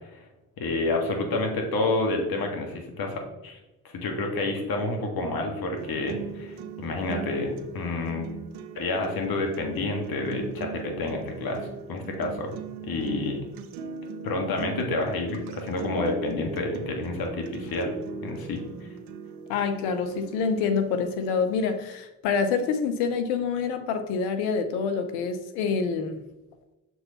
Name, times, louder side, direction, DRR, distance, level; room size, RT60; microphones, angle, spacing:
voice 1, 0.6-3.6 3.9-8.3 8.8-12.5 12.8-13.4 14.2-17.9 18.2-18.6, left 2 dB, 65° left, 2 dB, 1.8 m, -29 dB
sound 1, 5.8-21.8, right 6 dB, 75° right, 0.7 m, -40 dB
voice 2, 19.5-26.2, left 5 dB, 90° left, 8 dB, 0.8 m, -26 dB
6.7 x 4.6 x 4.1 m, 0.99 s
hypercardioid pair, 50°, 39 cm